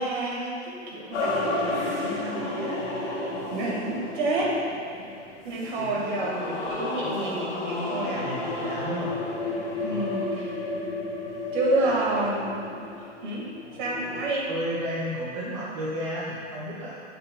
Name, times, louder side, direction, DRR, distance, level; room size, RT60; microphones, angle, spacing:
voice 1, 0.0-4.6 5.4-8.3 9.8-10.5 11.5-13.5 13.8-14.5, right 2 dB, 45° right, -3 dB, 1.7 m, -29 dB
sound 1, 1.1-14.2, left 2 dB, 40° left, 1.7 m, -32 dB
voice 2, 8.1-9.1 9.8-10.3 11.7-11.9 14.5-17.0, equal, 25° right, -7 dB, 0.7 m, -33 dB
10.0 x 6.8 x 2.3 m, 2.4 s
hypercardioid pair, 170°, 36 cm